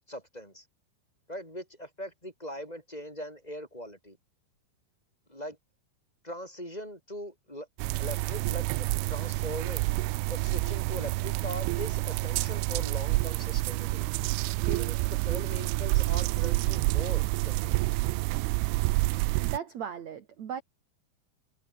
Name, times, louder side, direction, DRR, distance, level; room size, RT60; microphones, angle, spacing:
voice 1, 0.1-0.7 1.3-4.2 5.3-5.6 6.2-7.7 8.0-9.9 10.3-14.3 14.6-18.0, equal, 10° left, 6.4 m, -41 dB
sound 1, 7.8-19.6, right 22 dB, 85° right, 3.1 m, -28 dB
voice 2, 19.4-20.6, right 8 dB, 50° right, 2.3 m, -37 dB
omnidirectional pair, 5.5 m